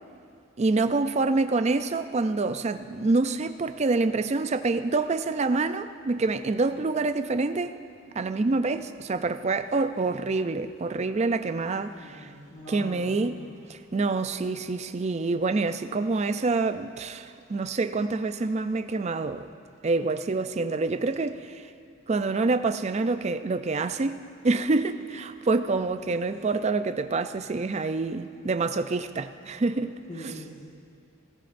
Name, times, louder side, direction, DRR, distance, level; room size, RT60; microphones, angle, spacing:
voice 1, 0.6-7.7 8.2-12.3 12.7-13.4 13.9-19.5 19.8-21.7 22.1-29.9, right 3 dB, 30° right, 0.4 m, -26 dB
voice 2, 12.0-13.4 30.1-30.6, left 1 dB, 35° left, 1.7 m, -42 dB
17.5 x 16.5 x 2.6 m
head